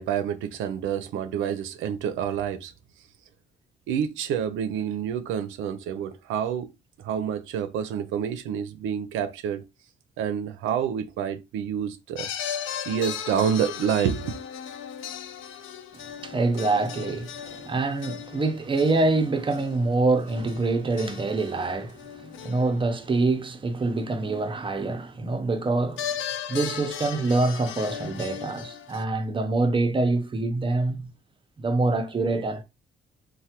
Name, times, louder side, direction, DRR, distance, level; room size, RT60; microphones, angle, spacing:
voice 1, 0.0-2.7 3.9-6.7 7.0-9.6 10.2-12.3 12.9-14.4, right 8 dB, 90° right, 0.5 m, -28 dB
sound 1, 12.2-23.0 26.0-29.0, left 9 dB, 80° left, 0.4 m, -37 dB
voice 2, 15.9-26.1 26.5-31.1 31.6-32.6, right 3 dB, 25° right, 0.6 m, -25 dB
3.2 x 2.1 x 2.8 m
cardioid pair, 90°, 20 cm